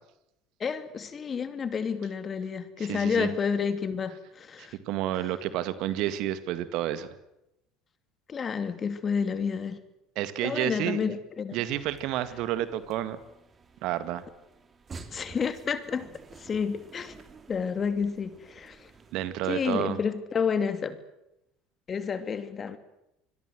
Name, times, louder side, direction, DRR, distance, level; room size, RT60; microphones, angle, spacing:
voice 1, 0.6-4.8 8.3-9.8 10.4-11.6 15.1-16.1 16.4-17.2 17.5-18.9 19.4-21.0 21.9-22.8, left 6 dB, 35° left, 11 dB, 2.7 m, -30 dB
voice 2, 2.8-3.3 4.6-7.1 10.2-11.0 11.5-13.2 13.8-14.2 19.1-20.0, right 12 dB, 60° right, 13 dB, 2.0 m, -30 dB
sound 1, 11.6-19.5, right 4 dB, 30° right, 3.2 m, -51 dB
26.0 x 22.0 x 7.8 m, 0.86 s
hypercardioid pair, 70°, 0 cm